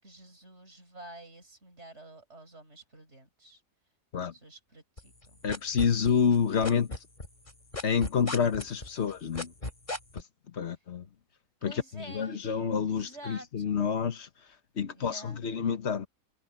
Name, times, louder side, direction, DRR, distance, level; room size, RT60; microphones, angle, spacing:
voice 1, 0.0-3.6 4.3-5.4 11.6-12.4 12.9-13.9 14.9-15.4, right 1 dB, 50° right, 7.2 m, -49 dB
sound 1, 5.0-6.4 6.6-10.2, left 2 dB, 35° left, 3.8 m, -36 dB
voice 2, 5.4-6.9 7.8-9.5 10.5-11.0 11.6-14.3 14.8-16.1, left 6 dB, 50° left, 1.5 m, -28 dB
omnidirectional pair, 1.5 m